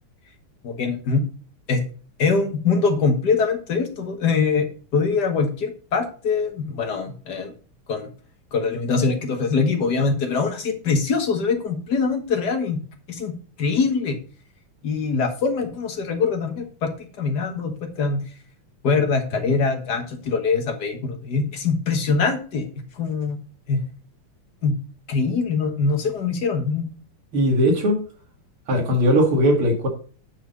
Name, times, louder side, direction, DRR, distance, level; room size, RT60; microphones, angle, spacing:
voice 1, 0.6-1.2 1.7-1.8 2.2-4.7 4.9-7.5 7.9-8.1 8.5-12.8 13.1-13.3 13.6-14.2 14.8-16.9 17.2-18.2 18.8-22.7 22.9-23.4 23.7-23.8 24.6-24.8 25.1-26.9, left 4 dB, 50° left, 1.9 m, -23 dB
voice 2, 27.3-28.0 28.7-29.9, equal, 75° right, 3.0 m, -19 dB
9.7 x 4.4 x 5.2 m
omnidirectional pair, 2.4 m